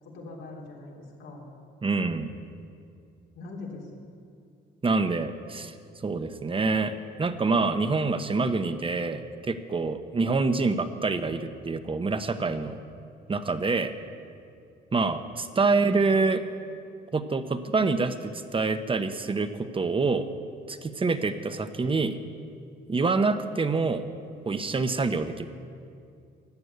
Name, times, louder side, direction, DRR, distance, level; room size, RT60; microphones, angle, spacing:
voice 1, 0.0-1.5 3.4-4.0, left 2 dB, 85° left, -2 dB, 3.5 m, -43 dB
voice 2, 1.8-2.3 4.8-5.7 6.0-6.9 7.2-12.8 13.3-13.9 14.9-16.4 17.1-20.3 20.7-22.2 22.9-24.0 24.4-25.5, right 3 dB, 25° right, 10 dB, 0.9 m, -26 dB
14.0 x 9.7 x 8.2 m, 2.4 s
cardioid pair, 90°, 20 cm